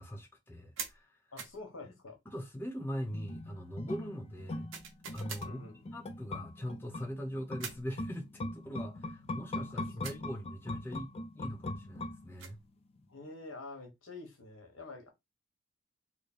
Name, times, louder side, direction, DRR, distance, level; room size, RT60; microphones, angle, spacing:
voice 1, 0.0-1.2 2.3-4.7 5.1-5.6 5.9-12.6, equal, 10° left, 0.7 m, -41 dB
sound 1, 0.8-1.0 1.4-1.6 4.7-5.5 7.6-7.9 10.0-10.3 12.1-12.6, right 7 dB, 70° right, 0.9 m, -43 dB
voice 2, 1.3-2.2 5.4-5.8 10.0-10.2 13.1-15.1, left 2 dB, 85° left, 1.3 m, -47 dB
sound 2, 3.1-12.7 13.0-13.1, left 2 dB, 30° left, 0.4 m, -41 dB
3.4 x 2.1 x 4.2 m
head